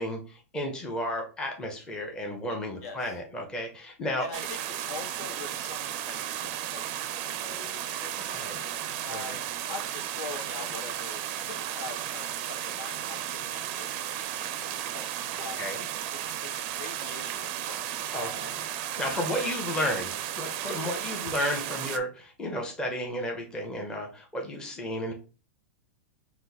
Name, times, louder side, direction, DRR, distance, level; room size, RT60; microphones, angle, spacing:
voice 1, 0.0-4.2 8.3-8.6 9.1-9.4 15.6-15.8 18.1-18.5 19.0-20.1 20.4-25.1, left 1 dB, 10° left, 1 dB, 0.7 m, -33 dB
voice 2, 2.8-3.2 4.2-15.1 15.4-15.7 16.1-18.5 19.1-19.9, left 4 dB, 80° left, 3 dB, 1.3 m, -44 dB
sound 1, 4.3-22.0, right 11 dB, 35° right, 0.4 m, -34 dB
4.0 x 2.5 x 4.0 m, 0.34 s
supercardioid pair, 165°, 8 cm